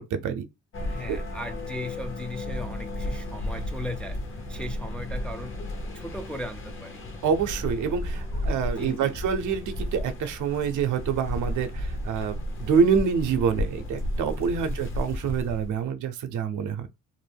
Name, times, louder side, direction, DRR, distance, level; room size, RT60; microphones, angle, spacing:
voice 1, 0.1-0.4 1.1-1.2 7.2-16.9, right 6 dB, 75° right, 0.6 m, -26 dB
sound 1, 0.7-15.9, left 1 dB, 40° left, 0.8 m, -33 dB
voice 2, 0.9-5.6 5.9-7.1 8.7-9.2 14.6-14.9, left 1 dB, 5° left, 0.3 m, -38 dB
2.5 x 2.1 x 3.3 m
cardioid pair, 90°, 30 cm